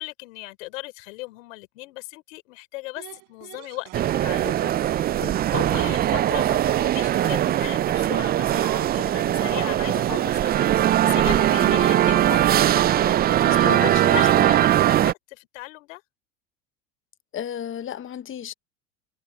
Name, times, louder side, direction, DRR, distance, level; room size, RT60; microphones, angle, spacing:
voice 1, 0.0-16.0, left 21 dB, 75° left, 4.8 m, -37 dB
sound 1, 3.0-5.7 6.0-6.5 6.7-6.9 7.2-9.2 10.3-10.5 10.8-11.3 11.5-11.7 12.0-12.5, right 32 dB, 65° right, 5.0 m, -45 dB
sound 2, 3.9-15.1, right 12 dB, 25° right, 0.4 m, -20 dB
voice 2, 5.0-5.4 11.6-11.9 13.4-14.6 17.3-18.5, left 9 dB, 30° left, 1.0 m, -34 dB
hypercardioid pair, 90°, 40 cm